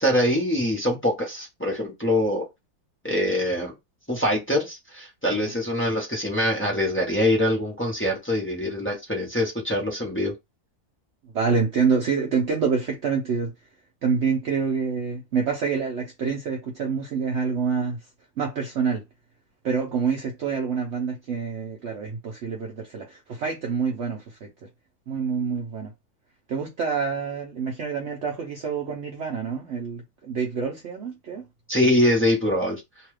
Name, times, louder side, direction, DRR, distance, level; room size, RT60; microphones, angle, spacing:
voice 1, 0.0-2.5 3.0-3.7 4.1-10.3 31.7-32.8, left 1 dB, 10° left, 0.7 m, -24 dB
voice 2, 11.3-13.5 14.0-18.0 18.4-19.0 19.6-24.5 25.1-25.9 26.5-31.5, right 5 dB, 60° right, 0.8 m, -27 dB
2.9 x 2.3 x 3.2 m
omnidirectional pair, 1.7 m